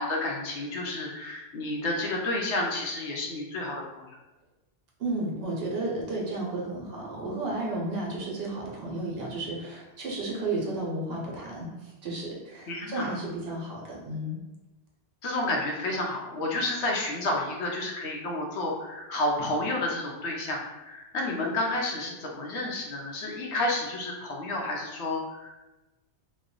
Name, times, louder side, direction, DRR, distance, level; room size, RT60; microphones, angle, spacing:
voice 1, 0.0-4.1 12.7-13.1 15.2-25.6, left 2 dB, 80° left, -1 dB, 1.0 m, -30 dB
voice 2, 5.0-14.4, right 2 dB, 65° right, -3 dB, 1.1 m, -33 dB
3.0 x 2.3 x 3.8 m, 1.1 s
omnidirectional pair, 1.1 m